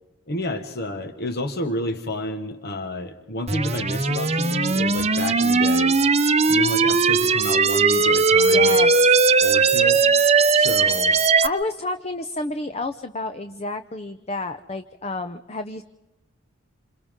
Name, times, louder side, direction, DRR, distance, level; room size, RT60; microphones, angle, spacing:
voice 1, 0.3-6.0 6.5-8.8 9.4-10.0 10.5-11.2, left 1 dB, 55° left, 6 dB, 1.5 m, -30 dB
sound 1, 3.5-11.5, right 4 dB, 35° right, 0.8 m, -18 dB
voice 2, 8.4-9.3 11.4-15.8, left 2 dB, 30° left, 9 dB, 0.7 m, -30 dB
28.0 x 27.5 x 3.7 m, 1.0 s
head